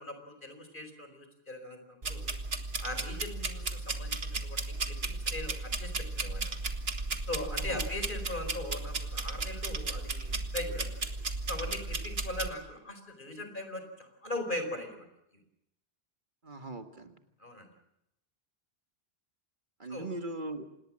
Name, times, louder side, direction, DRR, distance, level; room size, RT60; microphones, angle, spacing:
voice 1, 0.0-2.3 2.8-4.6 4.9-6.6 7.3-11.0 11.5-15.1 17.4-17.7 19.9-20.1, left 1 dB, 55° left, 7 dB, 4.7 m, -40 dB
sound 1, 2.0-12.5, right 3 dB, 75° right, 2.0 m, -35 dB
voice 2, 7.5-7.9 16.4-17.2 19.8-20.7, right 2 dB, 55° right, 7 dB, 1.8 m, -40 dB
27.0 x 19.5 x 7.6 m, 0.83 s
omnidirectional pair, 1.0 m